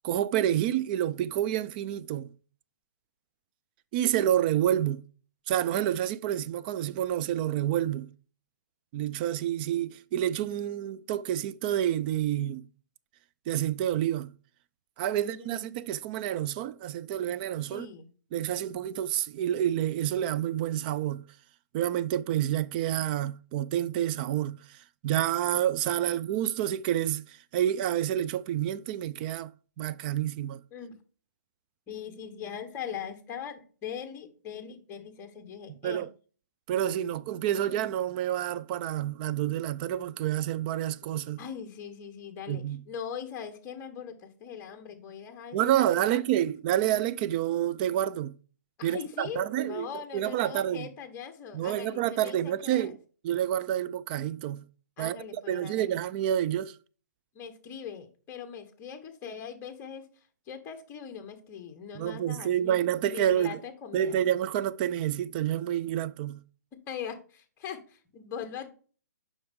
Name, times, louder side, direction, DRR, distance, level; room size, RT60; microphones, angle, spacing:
voice 1, 0.0-2.3 3.9-5.0 5.5-8.1 8.9-12.7 13.5-14.3 15.0-17.9 18.3-21.2 21.7-29.5 29.8-30.6 35.8-36.1 36.7-41.4 42.5-42.8 45.5-48.3 48.8-50.9 51.5-53.0 53.2-54.6 55.0-56.7 62.0-63.6 63.9-66.4, right 11 dB, 30° right, 0.4 m, -28 dB
voice 2, 15.1-15.7 17.7-18.0 30.7-31.0 31.9-36.1 41.4-46.5 48.8-52.9 55.0-56.0 57.3-60.1 60.5-64.2 66.7-68.7, left 8 dB, 20° left, 1.2 m, -41 dB
7.6 x 5.4 x 3.6 m
hypercardioid pair, 145°, 10 cm